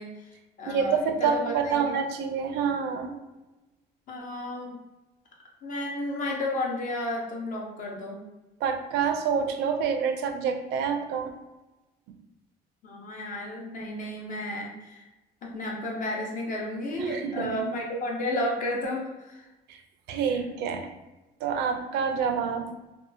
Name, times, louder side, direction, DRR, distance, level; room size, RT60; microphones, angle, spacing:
voice 1, 0.0-2.0 4.1-4.8 5.6-8.2 12.8-15.1 15.4-19.5 20.3-20.4, left 1 dB, 50° left, -1 dB, 0.7 m, -32 dB
voice 2, 0.7-3.2 8.6-11.3 17.0-17.7 19.7-19.8 20.1-20.9 21.4-22.7, right 6 dB, 85° right, 6 dB, 0.4 m, -27 dB
2.7 x 2.3 x 2.6 m, 1.0 s
cardioid pair, 110°, 17 cm